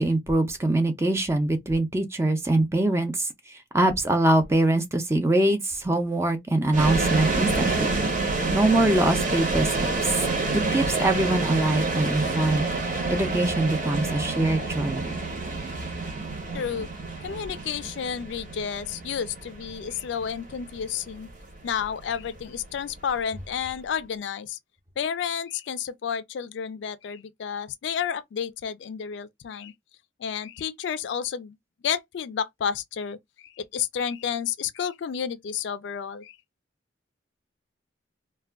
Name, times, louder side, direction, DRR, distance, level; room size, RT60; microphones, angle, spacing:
voice 1, 0.0-7.9 8.5-10.2 10.5-12.7 13.1-15.2, right 1 dB, 15° right, 0.4 m, -23 dB
sound 1, 6.7-23.7, right 3 dB, 40° right, 0.8 m, -28 dB
voice 2, 16.5-16.9 17.2-21.3 21.6-24.6 25.0-29.7 30.2-31.6 31.8-36.4, left 7 dB, 70° left, 0.3 m, -31 dB
2.3 x 2.2 x 3.4 m
head